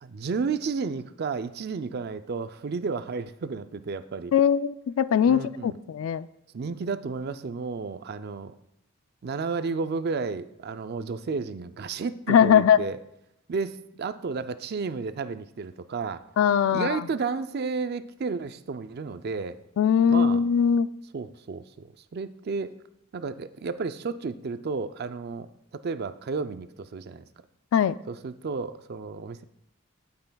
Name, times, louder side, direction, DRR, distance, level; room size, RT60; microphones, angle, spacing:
voice 1, 0.0-4.3 5.3-5.7 6.5-8.5 9.2-13.0 13.5-16.2 16.7-19.6 20.1-20.4 21.1-22.8 23.1-25.5 25.7-27.3 28.1-29.4, right 4 dB, 50° right, 12 dB, 0.4 m, -32 dB
voice 2, 4.3-6.3 12.3-12.8 16.4-17.1 19.8-20.9 27.7-27.9, left 8 dB, 70° left, 16 dB, 0.3 m, -21 dB
16.5 x 5.6 x 2.3 m, 0.79 s
head